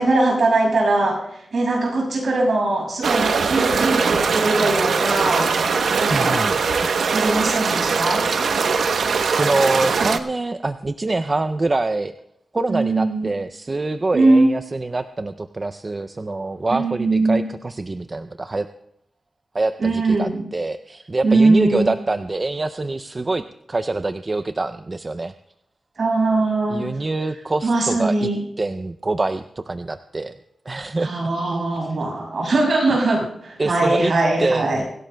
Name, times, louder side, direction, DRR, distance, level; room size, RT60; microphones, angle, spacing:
voice 1, 0.0-6.5 7.1-8.3 12.7-13.3 14.1-14.5 16.7-17.4 19.8-20.4 21.2-21.9 26.0-27.0 27.6-28.4 31.0-34.8, right 2 dB, 55° right, 0 dB, 6.2 m, -20 dB
sound 1, 3.0-10.2, right 5 dB, 80° right, 0.9 m, -21 dB
voice 2, 6.1-6.6 9.4-12.1 12.5-18.7 19.5-23.4 23.7-25.3 26.7-28.3 28.6-30.3 30.7-31.1 33.6-34.1 34.4-34.8, right 2 dB, 25° right, 9 dB, 0.4 m, -25 dB
24.5 x 17.0 x 2.2 m, 0.77 s
wide cardioid pair, 145°, 0 cm